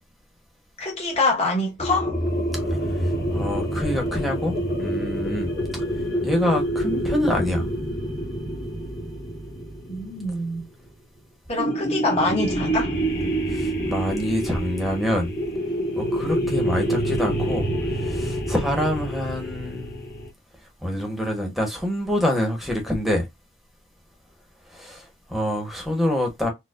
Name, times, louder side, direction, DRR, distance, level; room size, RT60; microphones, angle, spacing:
voice 1, 0.8-2.2 9.9-10.6 11.5-12.9, left 2 dB, 30° left, 1.2 m, -25 dB
sound 1, 1.8-10.9 11.6-20.3, right 1 dB, 55° left, 1.2 m, -27 dB
voice 2, 3.3-5.5 6.2-7.7 13.5-15.4 16.0-17.7 18.1-20.1 20.8-23.3 24.7-26.5, left 1 dB, ahead, 1.0 m, -26 dB
4.4 x 2.3 x 2.4 m
head